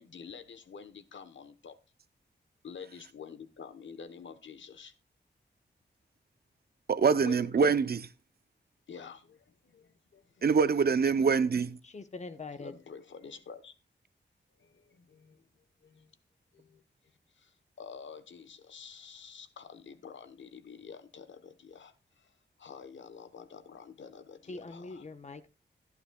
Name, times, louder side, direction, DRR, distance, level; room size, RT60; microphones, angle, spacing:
voice 1, 0.0-1.8 2.6-4.9 7.2-7.5 8.9-10.6 12.6-13.7 14.6-15.4 15.8-16.1 16.5-16.8 17.3-25.0, left 6 dB, 85° left, 1.0 m, -48 dB
voice 2, 6.9-8.1 10.4-11.8, right 5 dB, 55° right, 0.6 m, -25 dB
voice 3, 11.8-12.7 24.5-25.6, left 3 dB, 40° left, 1.0 m, -43 dB
14.5 x 11.0 x 2.3 m
wide cardioid pair, 120°, 19 cm